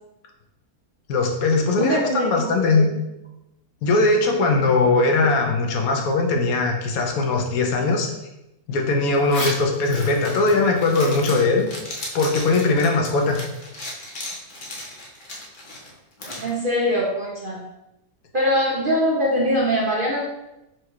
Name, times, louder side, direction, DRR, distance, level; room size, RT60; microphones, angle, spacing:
voice 1, 1.1-2.9 3.8-8.1 8.7-11.7 12.1-13.4, left 3 dB, 75° left, 2 dB, 1.1 m, -20 dB
voice 2, 1.8-3.0 16.4-17.6 18.3-20.2, equal, 50° right, -4 dB, 0.6 m, -22 dB
Zipper (clothing), 9.1-16.5, left 1 dB, 45° left, 0.8 m, -35 dB
4.6 x 2.2 x 4.5 m, 0.91 s
omnidirectional pair, 1.6 m